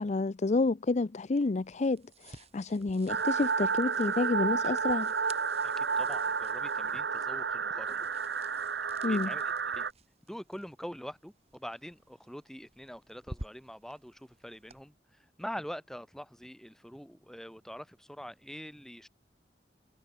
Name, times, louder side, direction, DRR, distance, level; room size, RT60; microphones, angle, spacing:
voice 1, 0.0-5.1 9.0-9.3, left 3 dB, 40° left, 0.5 m, -29 dB
sound 1, 1.3-14.8, right 2 dB, 35° right, 6.3 m, -53 dB
sound 2, 3.1-9.9, right 5 dB, 75° right, 1.1 m, -31 dB
voice 2, 5.6-8.1 9.1-9.9 10.3-14.9 15.4-19.1, equal, 5° left, 2.7 m, -44 dB
head